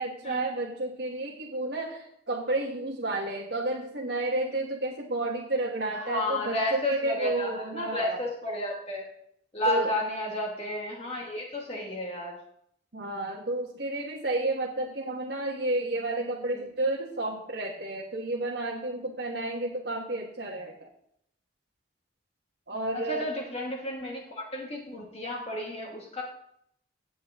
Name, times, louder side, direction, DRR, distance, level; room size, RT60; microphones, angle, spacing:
voice 1, 0.0-8.2 9.6-9.9 12.9-20.9 22.7-23.3, right 2 dB, 60° right, -2 dB, 1.5 m, -31 dB
voice 2, 6.0-9.1 9.5-12.3 16.5-16.6 23.1-26.2, left 1 dB, 30° left, -1 dB, 1.9 m, -32 dB
17.0 x 8.1 x 3.6 m, 0.73 s
head